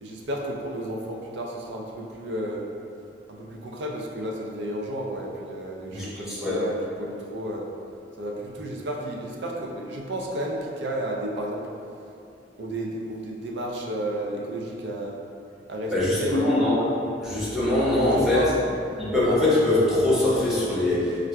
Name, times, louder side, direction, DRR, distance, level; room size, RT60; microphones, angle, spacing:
voice 1, 0.0-2.6 3.3-7.7 8.2-11.6 12.6-15.2 15.7-16.6 18.0-18.5, right 1 dB, 70° right, -1 dB, 0.5 m, -32 dB
voice 2, 5.9-6.6 15.9-16.8 17.2-18.4 19.0-21.3, left 2 dB, 5° right, -10 dB, 0.8 m, -22 dB
4.4 x 2.4 x 2.2 m, 2.6 s
head